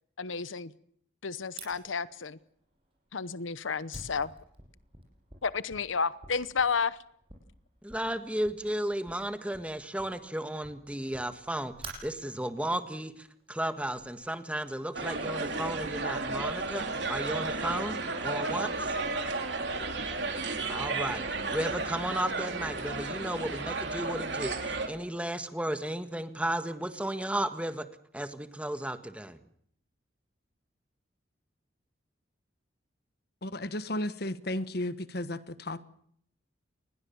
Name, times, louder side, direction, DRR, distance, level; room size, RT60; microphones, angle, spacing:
voice 1, 0.2-0.7 1.2-2.4 3.1-4.3 5.4-7.0, left 5 dB, 80° left, 16 dB, 0.9 m, -31 dB
Fire, 1.6-14.1, right 3 dB, 30° right, 7.6 m, -51 dB
voice 2, 7.8-11.7 12.0-19.0 20.7-27.9 28.1-29.4, right 1 dB, 5° right, 9 dB, 1.5 m, -34 dB
sound 1, 14.9-24.9, right 3 dB, 60° right, 3.8 m, -33 dB
voice 3, 33.4-35.9, left 1 dB, 50° left, 13 dB, 1.4 m, -34 dB
28.0 x 21.0 x 7.2 m, 0.67 s
head